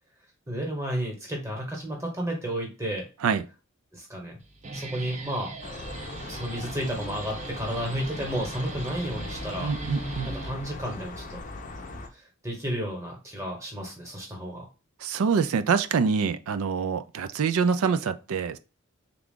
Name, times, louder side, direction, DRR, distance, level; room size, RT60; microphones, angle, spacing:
voice 1, 0.5-3.0 3.9-4.3 4.7-5.5 6.3-9.7 10.3-11.4 12.1-14.7, equal, 15° right, 1.1 m, -32 dB
Guitar, 4.4-11.0, right 3 dB, 30° right, 0.6 m, -40 dB
sound 1, 5.6-12.1, left 2 dB, 35° left, 0.5 m, -39 dB
voice 2, 9.6-10.3 15.0-18.6, right 6 dB, 80° right, 0.4 m, -25 dB
3.6 x 2.3 x 3.6 m
head